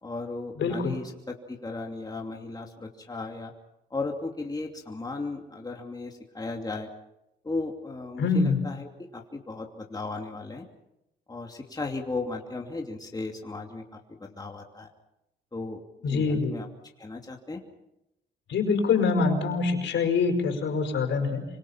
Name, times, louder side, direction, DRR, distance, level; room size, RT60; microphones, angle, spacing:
voice 1, 0.0-3.5 3.9-6.9 7.4-8.9 9.1-10.7 11.3-13.8 14.2-14.9 15.5-15.8 16.1-16.7 17.0-17.6, left 3 dB, 20° left, 1 dB, 2.8 m, -35 dB
voice 2, 0.6-0.9 8.2-8.6 16.0-16.6 18.5-21.5, left 4 dB, 65° left, 5 dB, 5.4 m, -25 dB
27.0 x 25.0 x 5.9 m, 0.89 s
cardioid pair, 90°, 20 cm